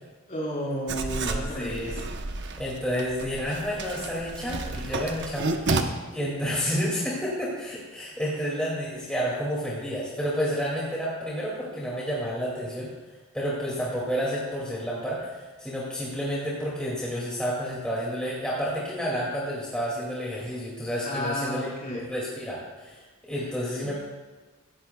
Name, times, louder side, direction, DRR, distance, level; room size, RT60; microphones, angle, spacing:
voice 1, 0.3-1.7 21.0-22.1 23.3-23.4 23.8-23.9, equal, 35° left, -4 dB, 4.4 m, -32 dB
Writing, 0.9-5.8, right 3 dB, 55° right, 0.9 m, -31 dB
voice 2, 1.2-2.0 2.6-12.9 13.3-21.7 22.1-23.0 23.3-24.0, equal, 5° left, -6 dB, 2.3 m, -30 dB
17.5 x 14.0 x 2.3 m, 1.3 s
head